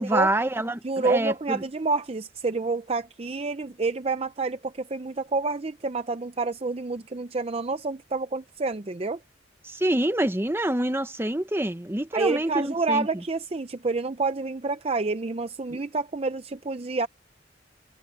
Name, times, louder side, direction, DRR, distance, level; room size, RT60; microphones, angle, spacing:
voice 1, 0.0-1.6 9.6-13.2 15.7-15.8, right 1 dB, 10° right, 1.0 m, -26 dB
voice 2, 0.8-9.2 12.1-17.1, right 3 dB, 30° right, 0.6 m, -28 dB
head